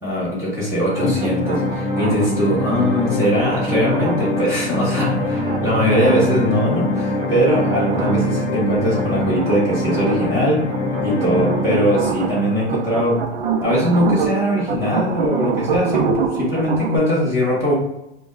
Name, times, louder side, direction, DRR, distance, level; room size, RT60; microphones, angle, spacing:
voice 1, 0.0-10.6 11.0-13.2 13.6-17.7, equal, 10° right, -8 dB, 1.1 m, -20 dB
sound 1, 0.9-12.9, left 1 dB, 20° left, 0.7 m, -24 dB
sound 2, 0.9-17.0, right 6 dB, 60° right, 0.6 m, -27 dB
5.1 x 2.3 x 2.4 m, 0.87 s
hypercardioid pair, 155°, 35 cm